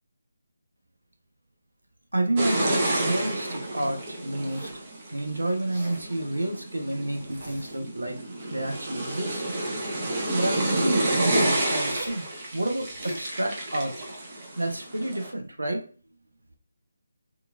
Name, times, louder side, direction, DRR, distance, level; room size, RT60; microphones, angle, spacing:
voice 1, 2.1-4.7 5.1-8.2 8.5-9.4 10.3-12.3 12.5-13.9 14.6-15.9, right 1 dB, 85° right, 5 dB, 0.6 m, -29 dB
sound 1, 2.4-15.3, right 1 dB, 30° right, 0.6 m, -29 dB
Zipper (clothing), 4.3-4.9 5.5-6.1 7.1-7.8 8.4-9.4 10.5-11.1 11.8-12.2 12.7-13.3, right 1 dB, 50° right, 1.1 m, -43 dB
2.9 x 2.3 x 2.3 m, 0.40 s
figure-of-eight pair, 155°, 0 cm